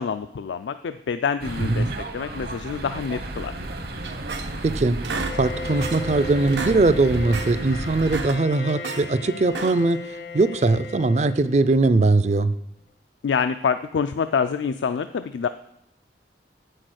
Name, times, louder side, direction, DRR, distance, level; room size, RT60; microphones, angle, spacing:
voice 1, 0.0-3.5 13.2-15.5, left 6 dB, 85° left, 10 dB, 0.4 m, -26 dB
sound 1, 1.4-8.3, right 1 dB, 60° right, 1.1 m, -33 dB
sound 2, 4.0-4.7 5.0-6.1 6.4-6.8 7.1-7.5 7.9-9.0 9.5-10.0, right 4 dB, 85° right, 0.9 m, -32 dB
voice 2, 4.6-5.0 5.3-10.0 10.3-12.5, right 3 dB, 40° right, 14 dB, 0.4 m, -20 dB
Bowed string instrument, 5.1-12.0, left 2 dB, 70° left, 0.7 m, -36 dB
8.2 x 6.4 x 6.3 m, 0.76 s
head